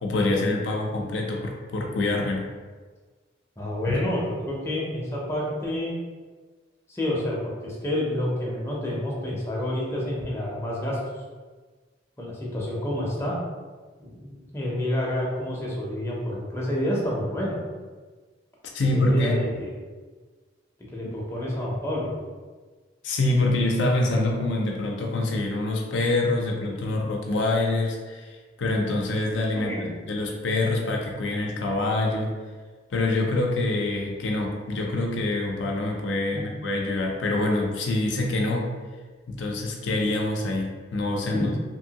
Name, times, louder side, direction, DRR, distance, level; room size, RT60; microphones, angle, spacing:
voice 1, 0.0-2.5 3.9-4.0 18.7-19.4 23.0-29.7 30.1-32.3 32.9-38.7 39.3-41.5, left 2 dB, 80° left, 0 dB, 0.5 m, -25 dB
voice 2, 3.6-5.9 6.9-11.0 12.2-13.4 14.0-17.6 18.8-19.7 20.9-22.1 29.5-30.1 31.5-31.7 36.3-36.4 41.3-41.5, left 1 dB, 15° left, -5 dB, 0.5 m, -29 dB
2.8 x 2.6 x 2.8 m, 1.4 s
head